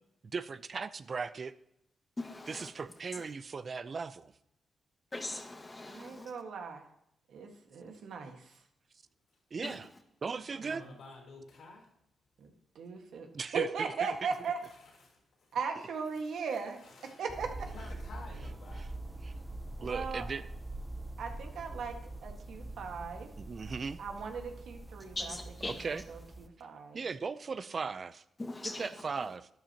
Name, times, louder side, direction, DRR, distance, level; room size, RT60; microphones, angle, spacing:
voice 1, 0.3-1.5 2.5-4.3 9.5-9.9 10.2-10.8 13.3-14.3 18.7-18.9 19.2-19.3 19.8-20.5 23.4-24.0 25.6-26.0 26.9-28.2 28.8-29.5, right 5 dB, 50° right, 0.5 m, -38 dB
voice 2, 2.2-2.7 3.1-3.2 5.1-6.3 9.6-9.8 25.1-25.7 28.4-28.9, left 2 dB, 25° left, 1.6 m, -40 dB
voice 3, 5.9-6.8 7.3-8.4 10.7-10.8 12.4-12.5 12.7-13.3 13.5-14.6 15.5-17.7 19.8-20.2 21.2-23.3 24.0-25.4 25.6-27.0, right 5 dB, 80° right, 1.6 m, -38 dB
voice 4, 10.6-11.9 14.7-15.2 16.8-17.2 17.7-18.9, left 3 dB, 80° left, 4.3 m, -52 dB
sound 1, 17.3-26.5, right 2 dB, 10° right, 0.7 m, -44 dB
12.0 x 10.5 x 2.9 m
cardioid pair, 75°, 0 cm